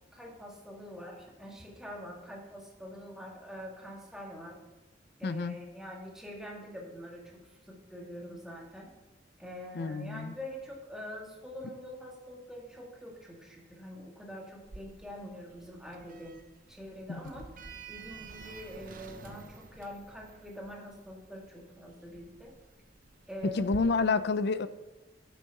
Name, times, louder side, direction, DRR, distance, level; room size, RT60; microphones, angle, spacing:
voice 1, 0.1-4.6 5.2-8.9 9.4-16.3 16.7-17.5 17.9-22.6 23.3-23.8, equal, 5° right, -2 dB, 1.9 m, -45 dB
voice 2, 5.2-5.6 9.7-10.3 17.1-17.2 23.4-24.7, left 4 dB, 60° left, 14 dB, 0.5 m, -29 dB
Sliding door, 14.6-23.8, right 4 dB, 50° right, 0.8 m, -50 dB
9.4 x 6.3 x 5.8 m, 1.1 s
head